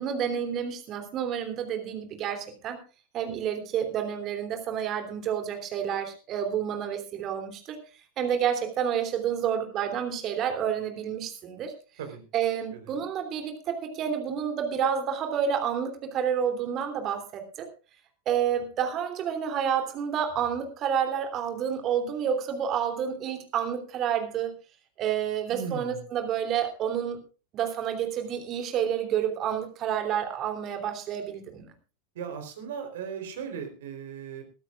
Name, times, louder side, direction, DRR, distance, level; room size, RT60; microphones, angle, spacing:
voice 1, 0.0-2.8 3.1-7.8 8.2-11.7 12.3-17.7 18.2-24.5 25.0-27.2 27.5-31.7, right 8 dB, 35° right, 5 dB, 3.1 m, -29 dB
voice 2, 25.5-26.0 32.1-34.4, right 7 dB, 55° right, 6 dB, 3.8 m, -37 dB
22.0 x 13.0 x 2.5 m, 0.34 s
figure-of-eight pair, 90°, 0 cm